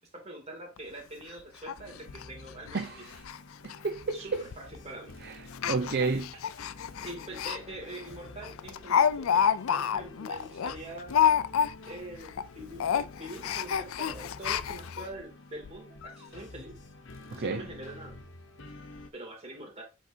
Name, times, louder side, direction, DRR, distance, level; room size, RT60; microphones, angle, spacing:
voice 1, 0.1-2.9 4.1-5.1 6.0-6.1 6.6-11.2 11.9-16.7 17.3-18.1 19.1-19.8, right 1 dB, 30° right, 2.5 m, -44 dB
Speech, 0.8-0.9 1.2-1.3 1.7-1.8 2.1-2.2 2.7-2.8 3.1-3.4 3.6-3.8 4.5-4.8 5.5-7.6 8.0-8.1 8.4-12.0 12.3-12.5 12.8-15.1 15.6-15.7 16.0-16.1, left 8 dB, 85° left, 0.4 m, -28 dB
sound 1, 1.8-19.1, left 2 dB, 65° left, 1.0 m, -49 dB
voice 2, 2.7-3.2 3.6-4.4 5.2-6.3 17.3-17.6, right 4 dB, 50° right, 0.6 m, -31 dB
7.8 x 4.5 x 2.7 m
head